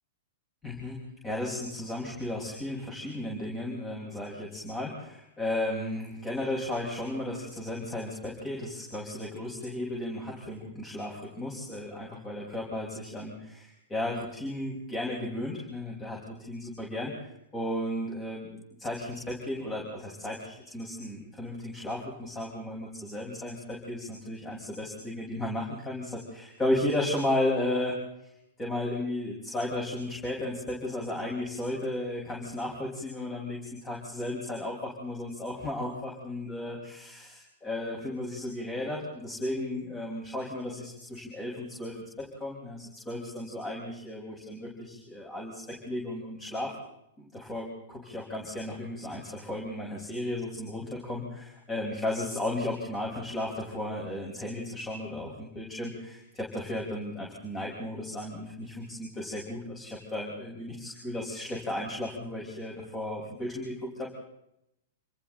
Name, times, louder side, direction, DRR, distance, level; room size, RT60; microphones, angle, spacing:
voice 1, 0.6-28.0 28.6-46.7 47.2-64.1, left 1 dB, 15° left, -1 dB, 5.3 m, -34 dB
28.0 x 27.0 x 3.9 m, 0.82 s
figure-of-eight pair, 105°, 0 cm